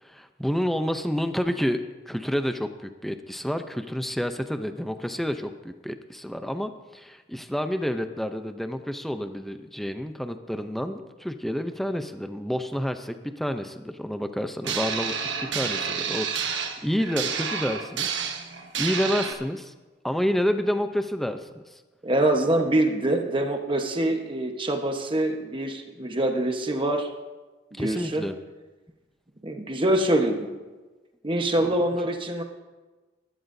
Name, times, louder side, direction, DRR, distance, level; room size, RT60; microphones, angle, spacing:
voice 1, 0.0-15.1 15.4-18.2 18.8-19.7 20.0-21.8 27.8-28.4 31.6-31.7, equal, ahead, 8 dB, 0.6 m, -29 dB
sound 1, 14.6-19.3, right 6 dB, 80° right, 1.2 m, -30 dB
voice 2, 22.0-27.1 27.7-28.3 29.4-30.5 31.2-32.4, right 1 dB, 30° right, 4 dB, 1.1 m, -25 dB
20.5 x 12.0 x 2.7 m, 1.2 s
head